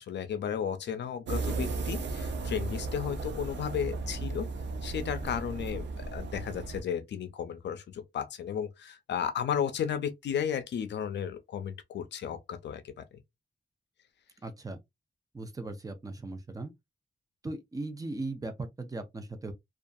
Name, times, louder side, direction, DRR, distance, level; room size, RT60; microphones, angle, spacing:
voice 1, 0.0-4.5 4.8-13.0, left 8 dB, 85° left, 0.4 m, -34 dB
sound 1, 1.3-6.8, right 3 dB, 90° right, 0.5 m, -35 dB
voice 2, 14.4-14.8 15.3-16.7 17.4-19.5, right 2 dB, 20° right, 0.4 m, -38 dB
2.6 x 2.3 x 2.3 m
wide cardioid pair, 170°, 18 cm